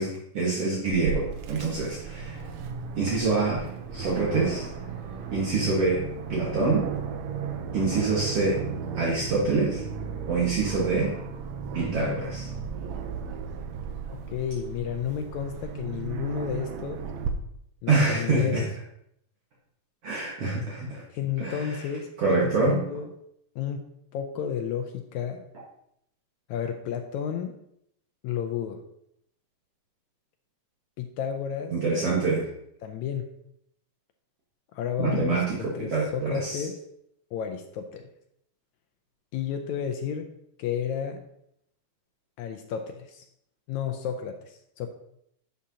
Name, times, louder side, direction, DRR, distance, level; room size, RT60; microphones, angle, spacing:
voice 1, 0.0-2.4 3.0-4.7 5.3-6.0 6.3-6.9 7.7-8.6 9.0-9.8 10.3-11.2 11.7-12.5 17.9-18.7 20.0-21.0 21.4-21.8 22.2-22.8 31.7-32.5 35.0-36.6, right 3 dB, 55° right, -5 dB, 2.4 m, -26 dB
Aircraft, 0.9-17.3, right 6 dB, 70° right, 1.8 m, -35 dB
sound 1, 3.6-10.3 10.6-10.7 11.1-11.6, right 3 dB, 90° right, 3.9 m, -44 dB
voice 2, 14.3-17.0 17.8-18.7 21.1-22.1 22.4-23.1 23.6-23.9 24.1-25.4 26.5-27.6 28.2-28.8 31.0-31.7 32.8-33.3 34.7-36.8 37.3-38.1 39.3-40.3 40.6-41.2 42.4-43.2 43.7-44.9, left 8 dB, 75° left, 5 dB, 1.9 m, -32 dB
11.0 x 7.5 x 2.8 m, 0.75 s
omnidirectional pair, 3.6 m